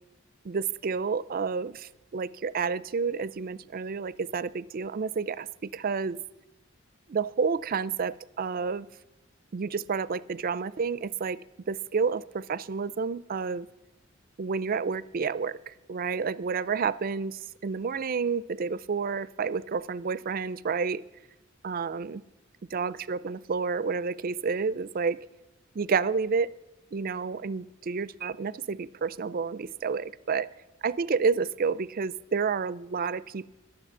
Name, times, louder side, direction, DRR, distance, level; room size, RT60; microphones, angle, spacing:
voice 1, 0.4-6.2 7.1-8.9 9.5-11.4 11.7-13.7 14.4-21.0 21.6-22.2 22.7-25.2 25.7-26.5 26.9-30.5 30.8-33.5, right 5 dB, 45° right, 18 dB, 0.4 m, -30 dB
12.5 x 11.0 x 7.2 m, 0.95 s
head